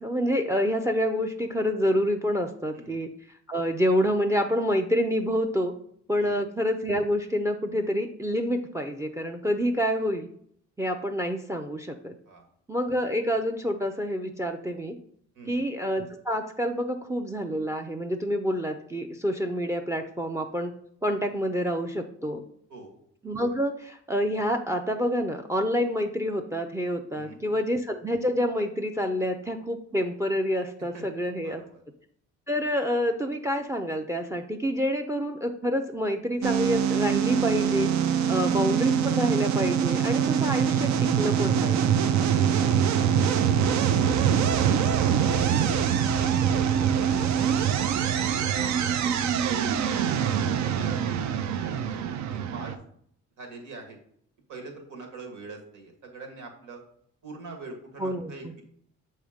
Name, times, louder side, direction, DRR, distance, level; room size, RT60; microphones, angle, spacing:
voice 1, 0.0-3.1 3.5-5.7 6.1-10.3 10.8-12.1 12.7-15.0 15.5-20.7 21.0-22.4 23.2-31.6 32.5-37.9 38.3-42.0 58.0-58.3, equal, 10° right, 7 dB, 0.5 m, -27 dB
voice 2, 15.3-15.7 22.7-23.0 27.1-27.4 30.9-31.0 31.4-31.8 38.3-38.6 43.1-45.6 46.1-47.6 48.1-48.7 49.4-49.8 50.5-52.8 53.4-54.0 54.5-56.8 57.2-58.6, right 3 dB, 85° right, 2 dB, 1.8 m, -43 dB
sound 1, 36.4-52.8, right 8 dB, 65° right, 0.6 m, -24 dB
6.6 x 3.1 x 5.0 m, 0.66 s
cardioid pair, 90°, 30 cm